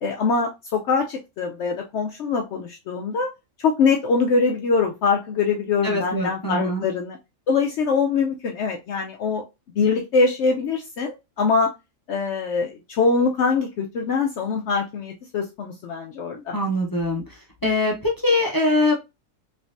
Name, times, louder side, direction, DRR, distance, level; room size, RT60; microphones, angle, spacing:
voice 1, 0.0-3.3 3.6-7.2 7.5-9.4 9.7-11.7 12.1-16.5, left 4 dB, 65° left, 2 dB, 0.8 m, -23 dB
voice 2, 5.8-6.8 16.5-17.2 17.6-18.9, left 2 dB, 25° left, 0 dB, 0.5 m, -22 dB
3.4 x 3.1 x 2.5 m, 0.24 s
omnidirectional pair, 1.4 m